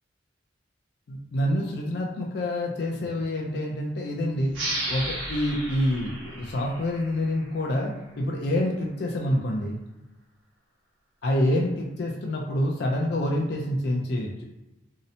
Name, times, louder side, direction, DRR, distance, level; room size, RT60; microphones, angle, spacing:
voice 1, 1.1-4.5 4.9-9.8 11.2-14.5, left 1 dB, 60° left, -1 dB, 0.4 m, -27 dB
sound 1, 4.5-7.8, right 1 dB, 85° right, 0.9 m, -34 dB
2.7 x 2.0 x 2.6 m, 1.0 s
head